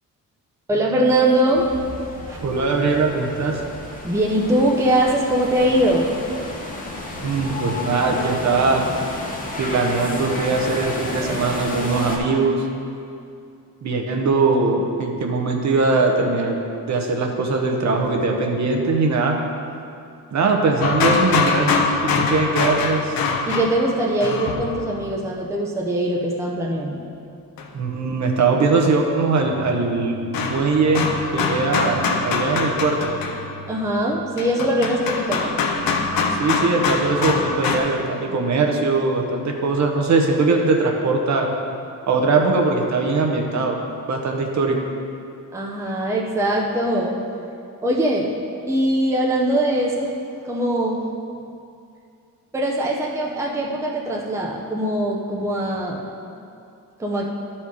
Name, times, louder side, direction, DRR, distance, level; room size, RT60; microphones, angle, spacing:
voice 1, 0.7-1.7 2.3-2.4 4.0-6.1 23.5-27.0 27.6-27.7 33.7-35.6 45.5-47.2 47.8-48.3 48.7-50.1 50.4-51.0 52.5-56.0 57.0-57.3, right 1 dB, 10° right, -2 dB, 0.6 m, -21 dB
sound 1, 1.5-12.2, left 2 dB, 25° left, 1.0 m, -32 dB
voice 2, 2.4-3.6 7.1-8.9 9.6-12.6 13.8-16.6 16.9-19.4 20.3-21.7 22.0-23.2 27.7-30.2 30.5-31.1 31.3-33.2 36.4-41.5 42.1-43.8 44.1-44.8, right 3 dB, 50° right, 2 dB, 0.9 m, -21 dB
sound 2, 20.8-25.1 27.6-27.7 29.4-37.8, left 4 dB, 75° left, 0.8 m, -24 dB
11.5 x 4.4 x 4.8 m, 2.5 s
cardioid pair, 150°, 35 cm